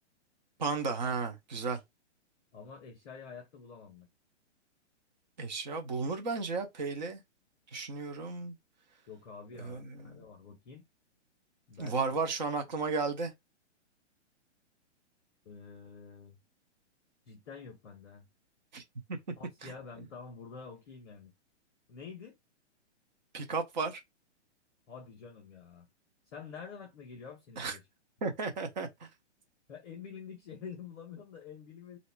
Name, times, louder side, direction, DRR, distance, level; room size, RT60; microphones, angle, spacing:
voice 1, 0.6-1.8 5.4-7.2 7.7-8.5 9.6-10.2 11.8-13.3 18.7-18.8 19.1-19.2 19.6-19.7 23.3-24.0 27.6-27.8 28.2-29.1, right 4 dB, 40° right, 0.9 m, -34 dB
voice 2, 2.5-4.1 9.1-10.9 11.7-12.1 12.6-12.7 15.4-16.4 17.3-18.3 19.4-21.3 21.9-22.4 24.9-25.9 26.2-27.8 29.7-32.0, left 6 dB, 10° left, 0.6 m, -48 dB
3.2 x 2.8 x 4.5 m
hypercardioid pair, 175°, 36 cm